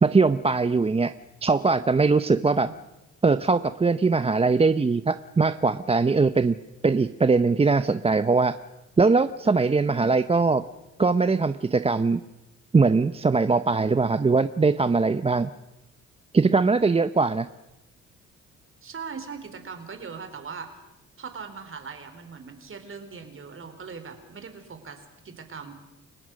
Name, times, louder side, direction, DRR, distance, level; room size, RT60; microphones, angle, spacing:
voice 1, 0.0-1.1 1.4-2.7 3.2-6.6 6.8-8.6 9.0-10.6 11.0-12.2 12.7-15.5 16.3-17.5, right 4 dB, 20° right, 12 dB, 0.7 m, -21 dB
voice 2, 9.4-9.8 18.8-20.8 21.2-25.7, right 5 dB, 45° right, 8 dB, 4.0 m, -40 dB
29.5 x 17.0 x 6.3 m, 0.98 s
cardioid pair, 90°, 30 cm